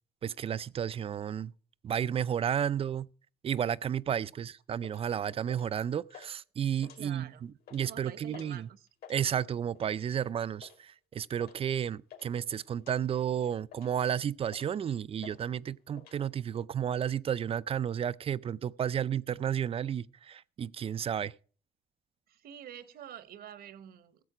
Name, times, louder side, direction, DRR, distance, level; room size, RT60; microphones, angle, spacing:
voice 1, 0.2-1.5 1.8-3.1 3.4-7.3 7.7-8.7 9.1-21.3, right 9 dB, 35° right, 0.4 m, -32 dB
sound 1, 4.8-5.0 5.5-5.8 6.1-6.3 6.7-7.3 7.6-7.8 8.3-8.6 8.9-9.2 9.7-10.0 10.6-10.8 11.4-11.6 11.8-12.3 12.8-13.0 13.4-14.0 14.5-14.8 15.2-15.4 15.7-16.2, left 8 dB, 65° left, 3.0 m, -52 dB
voice 2, 6.9-7.5 7.8-8.9 22.3-24.2, right 10 dB, 65° right, 1.1 m, -48 dB
15.5 x 7.5 x 4.9 m
cardioid pair, 110°, 17 cm